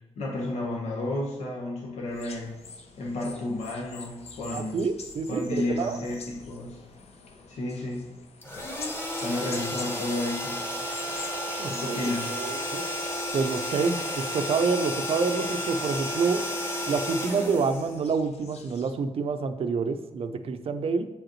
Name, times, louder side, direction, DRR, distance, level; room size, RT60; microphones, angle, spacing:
voice 1, 0.2-2.5 3.0-4.8 5.3-6.8 7.5-8.1 9.2-10.6 11.7-12.3, left 2 dB, 85° left, -2 dB, 1.2 m, -32 dB
sound 1, 2.1-18.9, left 4 dB, 65° left, 0.7 m, -47 dB
voice 2, 4.5-6.0 11.6-12.8 13.3-16.5 16.9-21.1, right 4 dB, 55° right, 9 dB, 0.5 m, -28 dB
sound 2, 8.4-18.4, equal, 20° left, 1.2 m, -32 dB
7.0 x 4.9 x 3.1 m, 1.0 s
cardioid pair, 85°, 11 cm